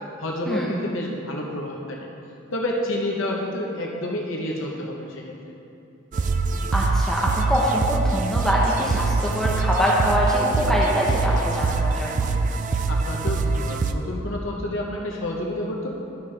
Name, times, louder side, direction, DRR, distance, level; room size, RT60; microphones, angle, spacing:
voice 1, 0.0-2.1 2.5-5.3 12.9-15.9, left 1 dB, 65° left, -1 dB, 0.9 m, -29 dB
sound 1, 6.1-13.9, right 3 dB, 40° right, 0.3 m, -24 dB
voice 2, 6.7-7.2 7.5-12.2, equal, ahead, -6 dB, 0.8 m, -23 dB
13.0 x 5.5 x 3.3 m, 2.8 s
head